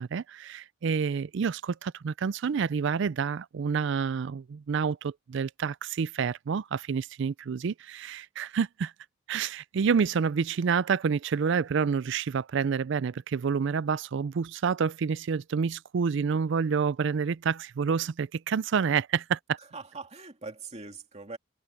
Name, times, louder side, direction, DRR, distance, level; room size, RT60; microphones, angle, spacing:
voice 1, 0.0-8.9 9.3-19.6, right 6 dB, 60° right, 0.4 m, -28 dB
voice 2, 19.6-21.4, right 3 dB, 35° right, 2.5 m, -42 dB
head